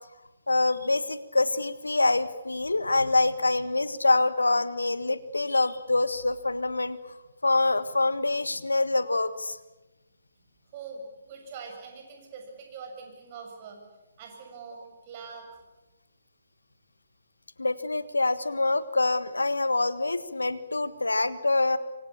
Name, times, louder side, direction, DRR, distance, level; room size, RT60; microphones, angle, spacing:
voice 1, 0.5-7.0 7.4-9.6 17.6-21.8, left 2 dB, 80° left, 14 dB, 1.5 m, -25 dB
voice 2, 10.7-13.8 14.2-15.6, right 5 dB, 35° right, 3 dB, 7.1 m, -43 dB
26.5 x 25.0 x 7.2 m, 1.1 s
figure-of-eight pair, 135°, 0 cm